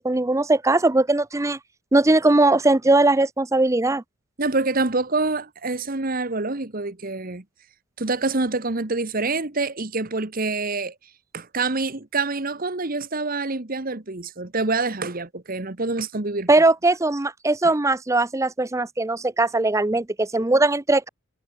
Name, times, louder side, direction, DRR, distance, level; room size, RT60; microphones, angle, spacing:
voice 1, 0.0-1.6 1.9-4.0 16.5-21.1, right 2 dB, 15° right, 0.5 m, -20 dB
voice 2, 4.4-7.4 8.0-10.9 11.3-16.5, right 3 dB, 40° right, 1.4 m, -26 dB
head